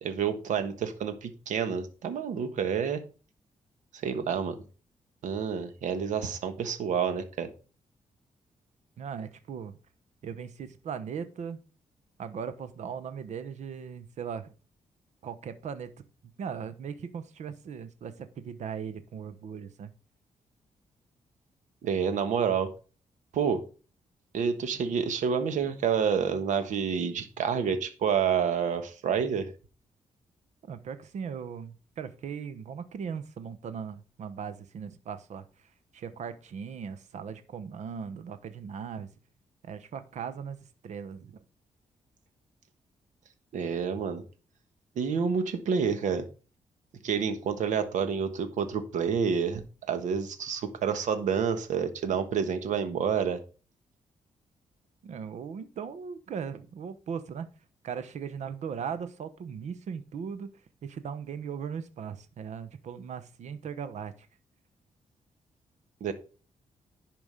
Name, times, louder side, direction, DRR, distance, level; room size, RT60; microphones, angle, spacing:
voice 1, 0.0-3.0 3.9-4.6 5.2-7.5 21.8-22.7 23.3-23.6 24.3-29.5 43.5-44.2 44.9-46.2 47.0-53.4 66.0-66.1, right 7 dB, 85° right, 9 dB, 1.4 m, -28 dB
voice 2, 9.0-9.8 10.2-11.6 12.2-14.5 15.2-15.9 16.2-19.9 30.6-35.4 35.9-39.1 39.6-41.4 55.0-57.5 57.8-60.5 60.8-64.3, right 7 dB, 70° right, 11 dB, 1.0 m, -38 dB
11.0 x 5.1 x 5.2 m, 0.35 s
cardioid pair, 105°, 12 cm